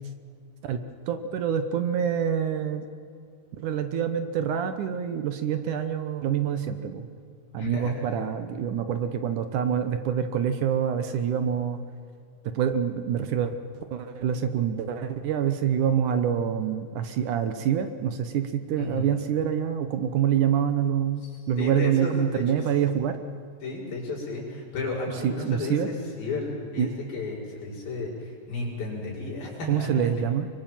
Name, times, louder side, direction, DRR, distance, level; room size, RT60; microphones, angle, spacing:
voice 1, 0.6-2.9 3.6-7.1 7.5-11.8 12.5-13.5 13.9-23.2 25.2-25.9 26.8-26.9 29.7-30.5, right 8 dB, 65° right, 9 dB, 2.3 m, -26 dB
voice 2, 7.6-8.0 18.8-19.1 21.2-22.4 23.6-29.9, left 3 dB, 80° left, -3 dB, 7.4 m, -33 dB
24.0 x 23.5 x 7.6 m, 2.2 s
omnidirectional pair, 4.2 m